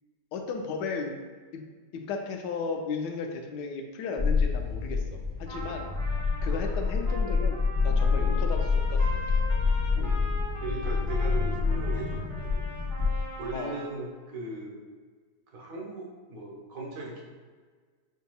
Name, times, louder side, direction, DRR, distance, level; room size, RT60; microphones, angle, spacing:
voice 1, 0.3-1.2 1.5-1.6 1.9-5.9 6.4-7.6 7.8-9.2 13.5-13.8, left 4 dB, 80° left, 3 dB, 1.2 m, -35 dB
sound 1, 4.2-13.5, left 4 dB, 25° left, 1.0 m, -27 dB
Trumpet, 5.5-14.0, equal, 25° right, 0.7 m, -41 dB
voice 2, 9.9-10.3 10.6-12.6 13.4-14.8 15.5-17.2, right 2 dB, 55° right, -2 dB, 1.2 m, -38 dB
6.7 x 2.7 x 2.3 m, 1.5 s
omnidirectional pair, 1.9 m